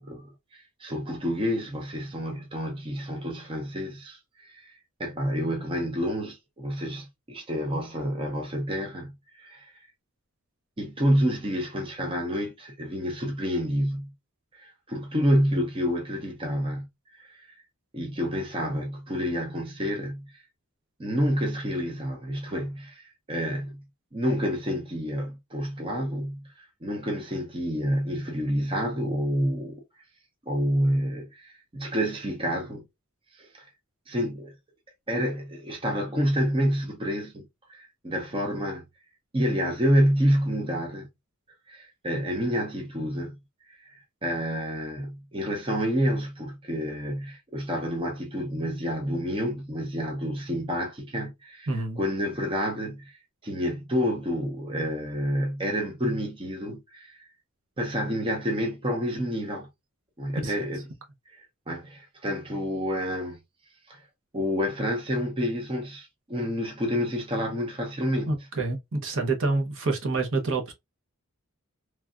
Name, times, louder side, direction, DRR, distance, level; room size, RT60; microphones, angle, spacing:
voice 1, 0.0-4.7 5.0-9.7 10.8-14.1 14.6-16.9 17.1-17.6 17.9-20.3 21.0-23.8 24.1-29.8 30.5-32.8 33.4-33.7 34.1-34.5 35.1-38.8 39.3-41.1 41.7-43.3 43.7-53.1 53.4-57.3 57.8-59.7 60.2-60.8 61.3-63.4 63.9-64.0 64.3-68.3, equal, 25° right, 0.6 m, -29 dB
voice 2, 51.7-52.0 60.4-60.5 68.3-70.7, right 3 dB, 60° right, 0.7 m, -27 dB
3.2 x 2.3 x 2.3 m
head